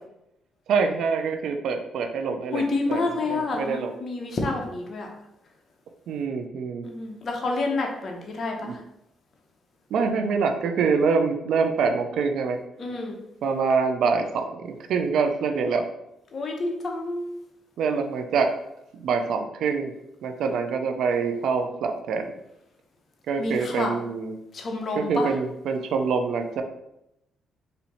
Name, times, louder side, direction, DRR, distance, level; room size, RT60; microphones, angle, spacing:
voice 1, 0.7-2.6 2.9-3.9 6.1-6.8 8.6-8.7 9.9-12.6 13.4-15.8 17.8-18.5 18.9-19.9 20.2-22.3 23.3-24.4 24.9-26.6, right 5 dB, 75° right, 6 dB, 0.5 m, -25 dB
voice 2, 2.5-5.1 6.8-8.8 12.8-13.2 16.3-17.4 23.4-23.9 24.5-25.3, left 3 dB, 50° left, 1 dB, 0.8 m, -28 dB
4.3 x 2.7 x 4.1 m, 0.83 s
cardioid pair, 90°, 0 cm